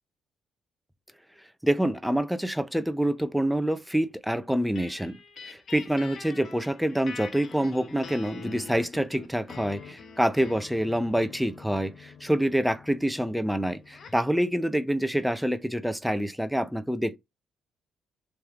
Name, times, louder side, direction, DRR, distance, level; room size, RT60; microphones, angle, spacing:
voice 1, 1.6-17.2, right 1 dB, ahead, 0.5 m, -27 dB
sound 1, 4.8-14.3, left 6 dB, 55° left, 0.8 m, -45 dB
3.2 x 3.1 x 3.6 m
cardioid pair, 90°, 0 cm